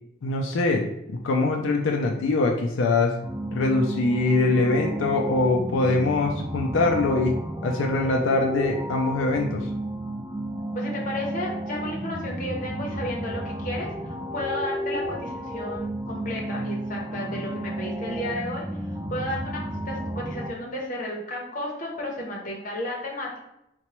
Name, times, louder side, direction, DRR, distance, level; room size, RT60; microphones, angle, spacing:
voice 1, 0.2-3.1 3.5-7.3 7.6-9.6, left 2 dB, 80° left, 2 dB, 0.4 m, -23 dB
sound 1, 3.2-20.5, right 1 dB, 15° right, 0.4 m, -32 dB
voice 2, 10.7-18.7 19.1-19.6 19.9-23.4, left 1 dB, 40° left, -2 dB, 0.7 m, -33 dB
4.0 x 2.2 x 2.9 m, 0.84 s
head